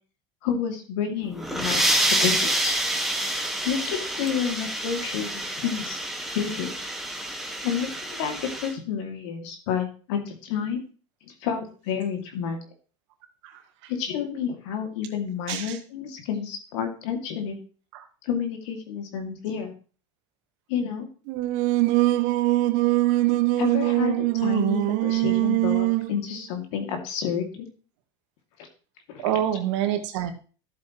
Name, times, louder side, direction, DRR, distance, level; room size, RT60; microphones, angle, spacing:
voice 1, 0.4-2.8 3.6-6.0 6.3-6.7 7.6-10.8 11.3-12.6 13.9-17.6 18.2-19.7 20.7-21.1 23.6-27.7 29.1-29.4, left 7 dB, 75° left, 4 dB, 2.5 m, -30 dB
sound 1, 1.2-8.7, right 1 dB, ahead, 1.7 m, -28 dB
voice 2, 15.5-15.8 17.9-18.1 29.2-30.3, right 11 dB, 80° right, 6 dB, 1.8 m, -27 dB
Singing, 21.3-26.1, right 19 dB, 60° right, 0.6 m, -22 dB
13.0 x 7.9 x 3.1 m, 0.37 s
supercardioid pair, 105°, 15 cm